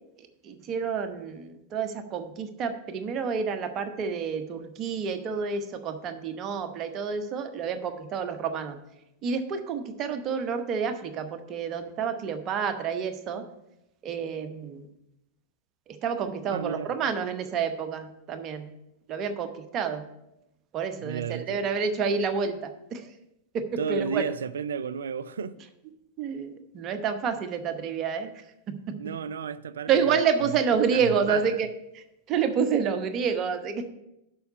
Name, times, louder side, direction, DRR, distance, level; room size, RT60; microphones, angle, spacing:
voice 1, 0.2-8.8 9.2-13.4 14.0-14.9 15.9-18.7 19.1-20.0 20.7-23.1 23.5-24.2 26.2-29.0 29.9-31.7 31.9-33.9, right 6 dB, 35° right, 0.9 m, -29 dB
voice 2, 16.5-16.9 21.0-21.6 23.8-25.6 29.0-31.7, right 7 dB, 65° right, 0.3 m, -33 dB
6.9 x 5.6 x 6.6 m
figure-of-eight pair, 90°, 0 cm